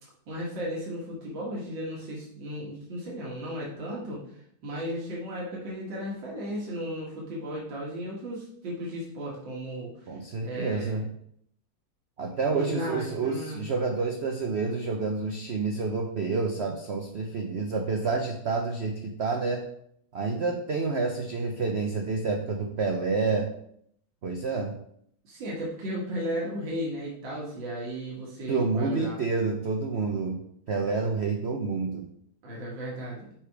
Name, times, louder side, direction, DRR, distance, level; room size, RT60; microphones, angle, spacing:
voice 1, 0.3-4.2 4.6-10.1 10.4-11.1 12.5-13.6 25.2-29.2 32.4-33.3, equal, 70° right, -5 dB, 2.3 m, -35 dB
voice 2, 10.1-11.0 12.2-19.6 20.1-23.5 24.2-24.8 28.5-30.4 30.7-32.1, right 4 dB, 90° right, 3 dB, 0.5 m, -28 dB
5.9 x 5.0 x 4.7 m, 0.69 s
omnidirectional pair, 2.1 m